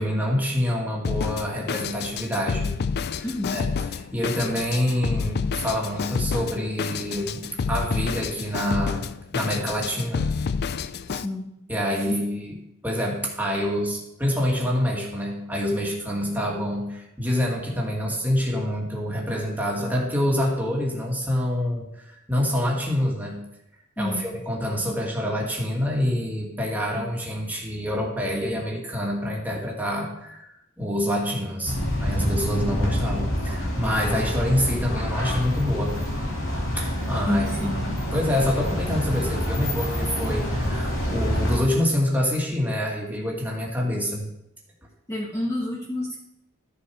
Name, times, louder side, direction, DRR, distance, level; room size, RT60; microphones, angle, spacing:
voice 1, 0.0-2.7 3.5-3.7 4.1-7.4 7.7-9.0 9.3-10.3 11.7-12.5 12.8-23.4 24.0-35.9 37.1-37.5 38.1-44.3, equal, 10° right, -2 dB, 2.4 m, -26 dB
Drum kit, 1.0-11.3, left 5 dB, 50° left, 0.4 m, -29 dB
voice 2, 3.2-3.6 11.1-11.5 12.1-12.2 24.0-24.2 32.5-32.6 37.2-37.8 45.1-46.2, left 1 dB, 15° left, -4 dB, 1.5 m, -29 dB
sound 1, 31.6-41.6, equal, 65° left, 2.5 m, -27 dB
13.0 x 7.0 x 4.8 m, 0.83 s
head